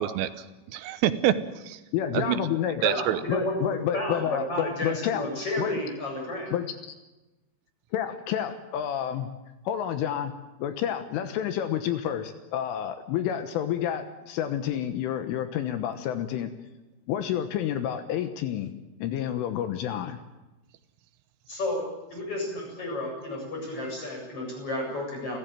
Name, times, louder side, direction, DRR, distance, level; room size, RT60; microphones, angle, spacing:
voice 1, 0.0-1.8 2.1-2.4 2.8-3.2, right 11 dB, 80° right, 11 dB, 3.6 m, -27 dB
voice 2, 1.9-2.9 3.3-5.3 5.6-5.8 6.5-6.7 7.9-9.3 9.7-10.3 10.6-16.5 17.1-18.7 19.0-20.2, left 10 dB, 75° left, 8 dB, 3.6 m, -29 dB
voice 3, 2.8-6.5 21.5-25.4, left 1 dB, 25° left, 0 dB, 8.6 m, -32 dB
29.5 x 15.0 x 9.0 m, 1.1 s
omnidirectional pair, 6.0 m